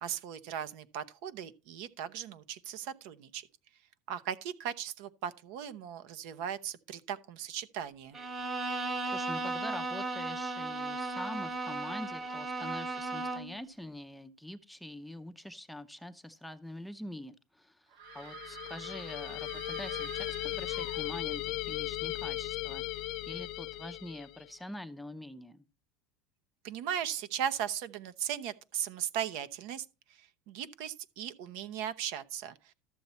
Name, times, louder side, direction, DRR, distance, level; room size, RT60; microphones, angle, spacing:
voice 1, 0.0-3.4 4.1-8.2 26.6-29.8 30.2-32.7, right 9 dB, 65° right, 0.8 m, -37 dB
Bowed string instrument, 8.1-13.6, right 3 dB, 20° right, 0.9 m, -35 dB
voice 2, 9.1-25.6, left 1 dB, ahead, 0.6 m, -45 dB
sound 1, 17.9-21.6, right 8 dB, 90° right, 2.2 m, -48 dB
sound 2, 18.1-24.5, left 17 dB, 50° left, 0.5 m, -37 dB
13.0 x 7.0 x 4.3 m
cardioid pair, 155°, 0 cm